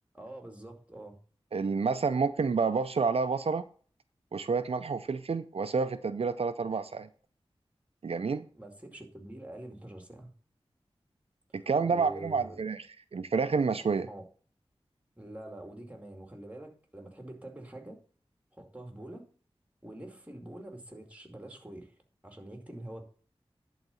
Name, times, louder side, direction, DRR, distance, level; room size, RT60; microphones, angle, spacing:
voice 1, 0.1-1.2 8.5-10.3 11.8-12.6 14.1-14.2 15.2-18.0 18.5-19.2 19.8-21.9 22.2-23.0, right 1 dB, 15° right, 3 dB, 2.3 m, -45 dB
voice 2, 1.5-3.6 4.3-7.1 8.0-8.4 11.5-12.8 13.1-14.1, right 5 dB, 75° right, 11 dB, 0.5 m, -29 dB
11.0 x 4.0 x 7.0 m, 0.43 s
wide cardioid pair, 55°, 10 cm